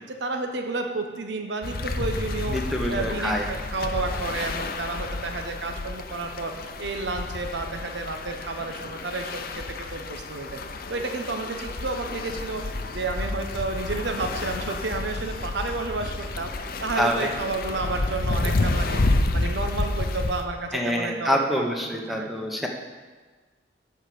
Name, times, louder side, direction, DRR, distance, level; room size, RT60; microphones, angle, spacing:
voice 1, 0.1-2.6 2.9-6.5 6.8-9.6 9.9-10.6 10.9-22.5, right 3 dB, 75° right, 4 dB, 0.9 m, -31 dB
sound 1, 1.6-20.4, left 2 dB, 55° left, 0.7 m, -30 dB
voice 2, 2.5-3.5 17.0-17.3 20.7-22.7, equal, ahead, 1 dB, 1.0 m, -26 dB
12.0 x 4.8 x 6.9 m, 1.4 s
head